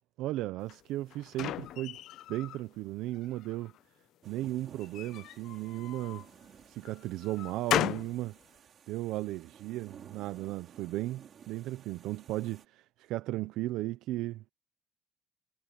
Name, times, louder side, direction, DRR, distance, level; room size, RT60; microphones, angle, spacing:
voice 1, 0.2-2.0 2.3-3.7 4.2-6.3 6.7-8.4 8.9-14.5, right 16 dB, 80° right, 0.6 m, -36 dB
sound 1, 0.7-2.6 3.1-3.8 4.8-6.3 6.9-8.2, left 13 dB, 70° left, 0.6 m, -36 dB
sound 2, 4.2-12.7, right 8 dB, 50° right, 4.7 m, -55 dB
cardioid pair, 105°, 0 cm